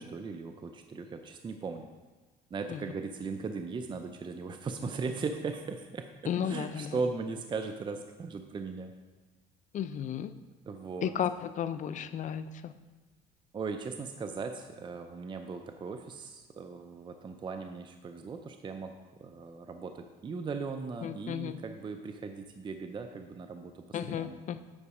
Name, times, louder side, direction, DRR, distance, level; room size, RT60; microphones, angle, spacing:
voice 1, 0.0-1.9 2.5-6.1 6.4-8.9 10.7-11.1 13.5-18.9 19.2-24.4, right 4 dB, 30° right, 6 dB, 0.5 m, -38 dB
voice 2, 6.3-7.0 9.7-10.3 11.0-12.7 21.0-21.6 23.9-24.6, left 9 dB, 45° left, 12 dB, 0.5 m, -34 dB
8.6 x 5.1 x 4.8 m, 1.3 s
cardioid pair, 110°, 17 cm